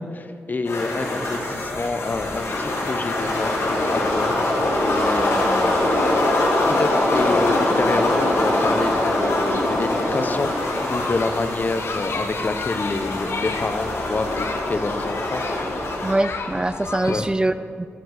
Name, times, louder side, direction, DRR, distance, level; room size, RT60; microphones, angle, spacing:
voice 1, 0.0-3.5 3.9-4.3 4.9-5.7 6.7-10.5 10.9-15.4 17.1-17.3, left 3 dB, 40° left, 8 dB, 1.0 m, -27 dB
sound 1, 0.7-16.1, left 1 dB, 85° left, 2.5 m, -23 dB
sound 2, 1.4-17.3, left 3 dB, 65° left, 1.2 m, -34 dB
voice 2, 16.0-17.9, right 2 dB, 20° right, 12 dB, 0.4 m, -23 dB
14.5 x 7.2 x 6.6 m, 2.3 s
cardioid pair, 60°, 4 cm